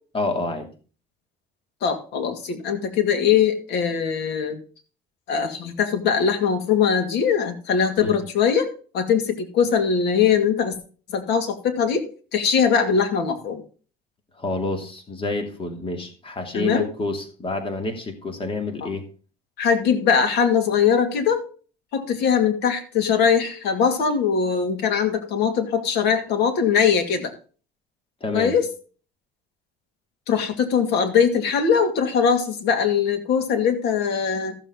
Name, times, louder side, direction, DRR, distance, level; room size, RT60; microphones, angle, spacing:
voice 1, 0.1-0.7 8.0-8.2 14.4-19.1 28.2-28.6, left 2 dB, 30° left, 5 dB, 2.7 m, -28 dB
voice 2, 1.8-4.6 5.3-8.7 8.9-10.7 11.1-12.0 12.3-13.6 16.5-16.9 18.8-18.9 19.6-21.4 21.9-27.3 28.3-28.7 30.3-34.6, left 7 dB, 75° left, 6 dB, 2.3 m, -21 dB
14.0 x 7.4 x 3.8 m, 0.38 s
cardioid pair, 110°, 17 cm